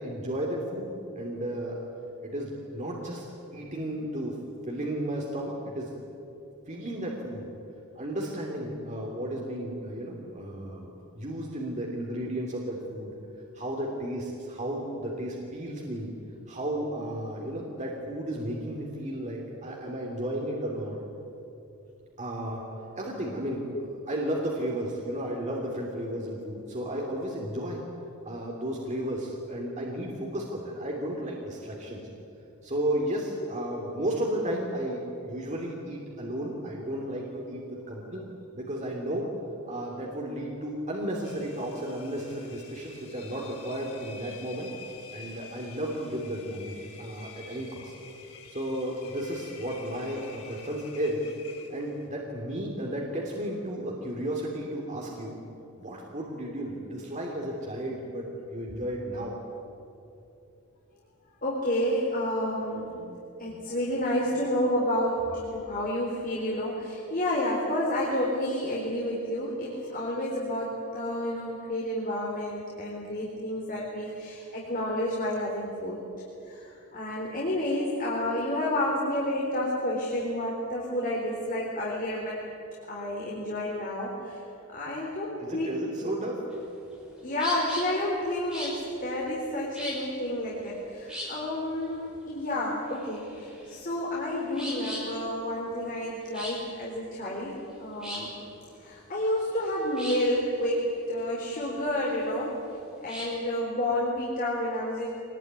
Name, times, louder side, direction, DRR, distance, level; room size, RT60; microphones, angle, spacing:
voice 1, 0.0-1.8 2.2-3.2 3.5-4.4 4.7-5.9 6.7-7.5 7.9-13.1 13.5-16.1 16.5-21.0 22.2-22.6 22.9-23.7 24.1-27.8 28.2-32.0 32.6-38.2 38.5-39.3 39.7-44.7 45.1-47.9 48.5-51.3 51.7-55.4 55.8-59.4 85.4-86.5, right 1 dB, 30° right, -1 dB, 3.0 m, -33 dB
Engine, 41.2-52.1, left 6 dB, 75° left, 4.1 m, -49 dB
voice 2, 61.4-76.0 76.5-82.5 82.9-85.7 86.0-86.1 87.2-98.3 98.8-102.6 103.0-105.1, left 1 dB, 40° left, -4 dB, 3.8 m, -30 dB
sound 1, 86.5-103.4, equal, 5° right, 6.0 m, -41 dB
24.5 x 20.0 x 9.7 m, 2.8 s
head